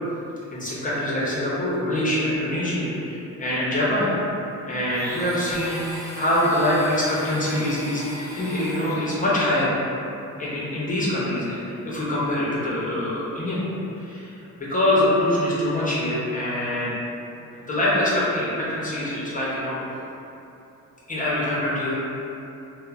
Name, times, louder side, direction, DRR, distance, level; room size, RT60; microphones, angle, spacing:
voice 1, 0.5-4.1 4.7-8.1 8.4-9.7 10.4-13.6 13.9-14.3 14.6-16.9 17.5-19.8 21.1-22.0, left 1 dB, 25° left, -8 dB, 0.6 m, -24 dB
Domestic sounds home sounds, 4.9-9.3, equal, 10° right, 0.5 m, -37 dB
2.9 x 2.1 x 2.3 m, 2.8 s
cardioid pair, 90°, 30 cm